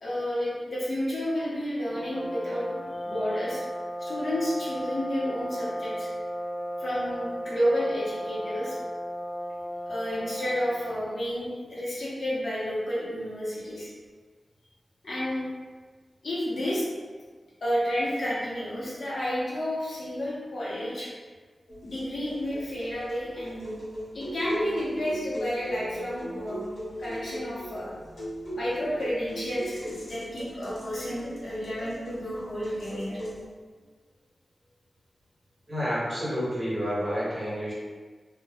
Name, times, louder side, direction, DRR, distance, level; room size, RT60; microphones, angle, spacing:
voice 1, 0.0-3.6 4.0-6.1 6.8-8.7 9.9-13.9 15.0-15.5 16.2-16.8 17.6-21.1 21.8-23.7 24.1-26.6 27.0-27.9 28.5-33.2, equal, 55° left, -8 dB, 0.8 m, -31 dB
sound 1, 1.9-10.9, equal, ahead, 0.5 m, -35 dB
sound 2, 21.7-33.4, equal, 85° left, 1.0 m, -39 dB
voice 2, 35.7-37.7, equal, 15° right, -10 dB, 1.0 m, -29 dB
2.2 x 2.2 x 3.4 m, 1.5 s
wide cardioid pair, 135°, 0 cm